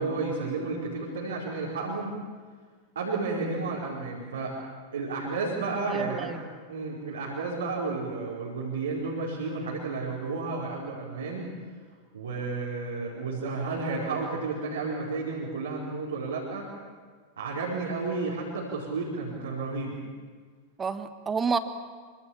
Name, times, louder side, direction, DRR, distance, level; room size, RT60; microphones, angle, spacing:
voice 1, 0.0-2.2 2.9-4.5 4.9-6.3 6.7-11.5 12.1-16.7 17.4-20.0, right 3 dB, 65° right, -5 dB, 4.9 m, -32 dB
voice 2, 5.9-6.4 20.8-21.6, right 5 dB, 20° right, 11 dB, 1.5 m, -29 dB
26.0 x 25.5 x 7.2 m, 1.5 s
figure-of-eight pair, 90°, 0 cm